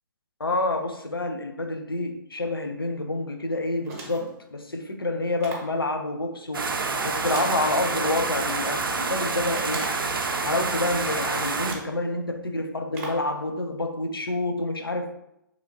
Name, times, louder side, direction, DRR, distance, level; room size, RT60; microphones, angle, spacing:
voice 1, 0.4-6.7 7.0-9.9 10.4-15.2, left 2 dB, 90° left, 0.4 m, -28 dB
sound 1, 3.8-4.4 5.4-5.8 7.3-8.2 9.5-10.2 11.1-11.2 11.6-12.0 12.9-13.3, right 2 dB, 45° right, 0.8 m, -39 dB
sound 2, 6.5-11.7, right 4 dB, 75° right, 0.4 m, -28 dB
2.8 x 2.4 x 2.5 m
figure-of-eight pair, 125°, 12 cm